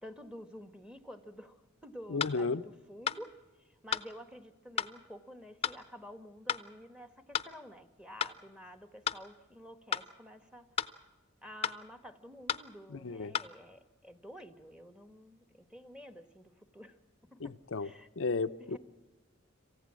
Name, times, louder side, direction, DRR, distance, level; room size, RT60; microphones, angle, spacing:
voice 1, 0.0-3.3 3.6-10.7 11.4-17.0 17.3-17.4 17.8-18.1 18.6-18.8, equal, 5° right, 1.3 m, -50 dB
voice 2, 2.1-2.6 12.9-13.3 17.4-17.9 18.2-18.8, left 4 dB, 70° left, 0.6 m, -33 dB
sound 1, 2.2-2.4 3.1-3.2 3.9-4.1 4.8-4.9 5.6-5.8 6.5-6.7 7.3-7.5 8.2-8.4 9.1-9.2 9.9-10.1 10.8-10.9 11.6-11.8 12.5-12.7 13.3-13.5, left 8 dB, 30° left, 0.7 m, -33 dB
27.0 x 15.5 x 7.5 m
head